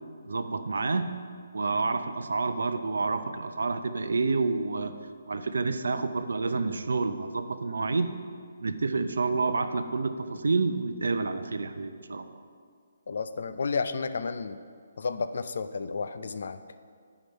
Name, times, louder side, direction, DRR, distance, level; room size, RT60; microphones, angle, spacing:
voice 1, 0.2-1.2 1.5-4.9 5.3-8.1 8.6-12.4, right 3 dB, 80° right, 9 dB, 0.6 m, -29 dB
voice 2, 13.1-14.6 15.0-16.6, left 4 dB, 65° left, 11 dB, 0.4 m, -31 dB
9.1 x 5.0 x 5.2 m, 2.1 s
hypercardioid pair, 160°, 0 cm